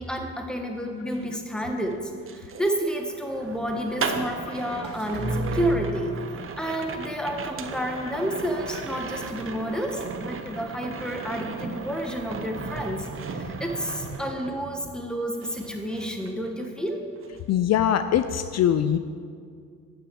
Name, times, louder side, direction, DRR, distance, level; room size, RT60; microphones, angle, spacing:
voice 1, 0.0-2.0 2.3-6.1 6.6-17.0, equal, 5° left, 3 dB, 1.5 m, -30 dB
sound 1, 1.0-15.1 15.4-16.9 17.2-17.5, right 5 dB, 45° right, 0.9 m, -37 dB
sound 2, 3.4-14.1, right 2 dB, 65° right, 2.5 m, -38 dB
voice 2, 17.5-19.0, left 10 dB, 60° left, 10 dB, 0.5 m, -22 dB
9.0 x 7.3 x 7.7 m, 2.2 s
cardioid pair, 90°, 30 cm